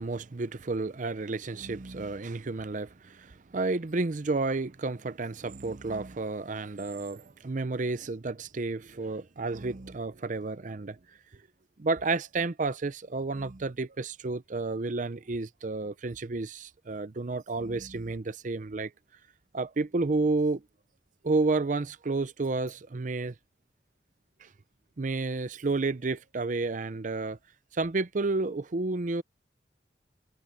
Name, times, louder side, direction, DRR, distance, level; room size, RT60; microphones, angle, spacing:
voice 1, 0.0-3.3 3.5-11.0 11.8-18.9 19.5-20.6 21.2-23.3 25.0-27.4 27.8-29.2, right 3 dB, 45° right, 0.6 m, -31 dB
head